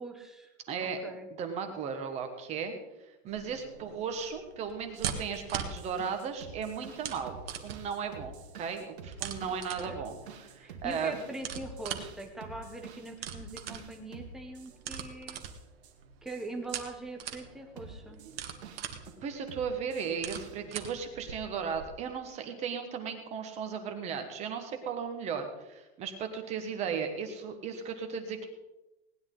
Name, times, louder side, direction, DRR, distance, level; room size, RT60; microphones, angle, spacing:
voice 1, 0.0-0.5 0.8-1.3 9.5-10.0 10.6-15.4 16.2-18.2, right 2 dB, ahead, 2 dB, 0.9 m, -42 dB
voice 2, 0.7-1.0 1.4-2.7 3.2-11.3 19.2-28.5, right 6 dB, 20° right, 6 dB, 1.3 m, -36 dB
sound 1, 3.3-21.8, right 8 dB, 60° right, 1.6 m, -43 dB
sound 2, 5.0-15.1 15.4-15.9 16.3-16.8 17.8-19.1 19.5-20.6, right 4 dB, 75° right, 2.0 m, -48 dB
18.5 x 10.5 x 3.9 m, 0.99 s
supercardioid pair, 165°, 33 cm